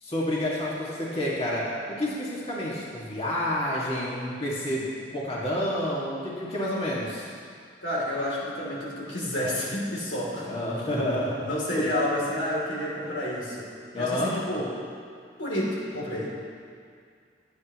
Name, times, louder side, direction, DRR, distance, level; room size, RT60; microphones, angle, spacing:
voice 1, 0.0-7.3 10.4-11.4 11.8-11.9 13.9-14.3, left 1 dB, 35° left, -6 dB, 2.2 m, -29 dB
voice 2, 7.8-10.5 10.9-11.1 11.4-13.7 13.9-14.7 15.4-16.4, left 1 dB, 85° left, -4 dB, 3.3 m, -30 dB
23.0 x 9.3 x 3.1 m, 2.2 s
head